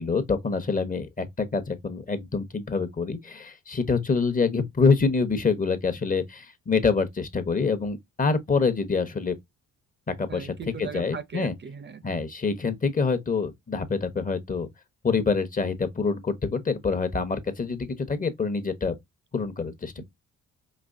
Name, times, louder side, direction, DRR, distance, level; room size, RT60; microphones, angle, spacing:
voice 1, 0.0-9.3 10.2-11.5 12.0-14.7 15.0-18.9 19.3-19.9, left 4 dB, 25° left, 1.0 m, -26 dB
voice 2, 10.3-12.0 20.0-20.1, right 6 dB, 35° right, 0.7 m, -38 dB
5.2 x 2.8 x 2.5 m
cardioid pair, 90°, 30 cm